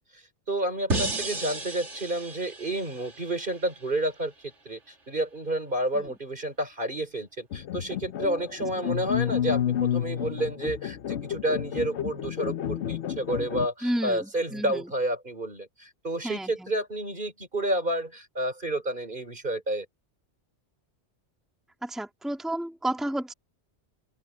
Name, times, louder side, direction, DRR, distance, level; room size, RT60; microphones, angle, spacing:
voice 1, 0.1-4.3 4.7-19.9, right 1 dB, 45° right, 4.0 m, -30 dB
sound 1, 0.9-4.0, right 2 dB, 80° right, 2.7 m, -33 dB
sound 2, 7.5-13.7, left 10 dB, 75° left, 1.1 m, -30 dB
voice 2, 13.8-14.8 16.2-16.7 21.8-23.3, right 1 dB, ahead, 2.2 m, -31 dB
open air
omnidirectional pair, 1.2 m